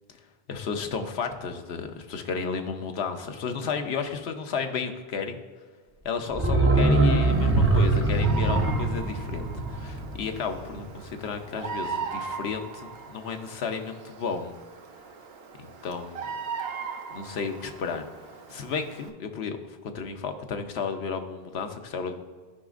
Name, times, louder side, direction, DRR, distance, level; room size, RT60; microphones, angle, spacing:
voice 1, 0.5-5.4 6.0-14.6 15.6-16.3 17.1-18.1 18.5-22.2, left 5 dB, 80° left, 6 dB, 1.0 m, -33 dB
sound 1, 6.3-11.1 11.4-11.5, right 2 dB, 15° right, 0.5 m, -23 dB
Bird vocalization bird call bird song, 7.3-19.1, right 5 dB, 70° right, 1.0 m, -39 dB
12.5 x 5.0 x 2.4 m, 1.5 s
omnidirectional pair, 1.1 m